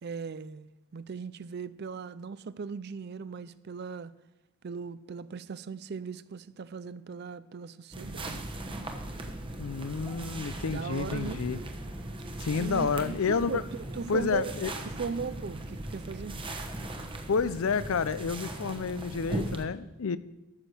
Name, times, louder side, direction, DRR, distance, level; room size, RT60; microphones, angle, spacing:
voice 1, 0.0-4.1 4.6-8.4 10.7-11.4 12.6-14.5 14.9-16.4, right 5 dB, 45° right, 0.4 m, -38 dB
sound 1, 7.9-19.6, right 1 dB, 25° right, 1.0 m, -38 dB
voice 2, 9.6-11.6 12.4-13.6 14.1-14.7 17.3-20.2, left 5 dB, 70° left, 0.5 m, -30 dB
13.0 x 6.3 x 6.7 m
head